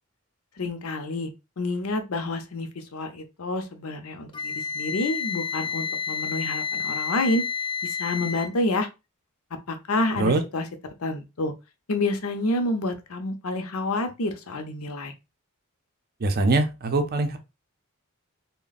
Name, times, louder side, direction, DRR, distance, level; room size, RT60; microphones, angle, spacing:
voice 1, 0.6-1.3 1.6-7.4 7.8-8.9 9.7-10.7 11.0-11.5 11.9-15.1, left 2 dB, 70° left, 0.6 m, -28 dB
Wind instrument woodwind instrument, 4.3-8.5, left 6 dB, 20° left, 0.4 m, -30 dB
voice 2, 16.2-17.4, right 2 dB, 45° right, 0.5 m, -22 dB
3.4 x 2.1 x 4.0 m
head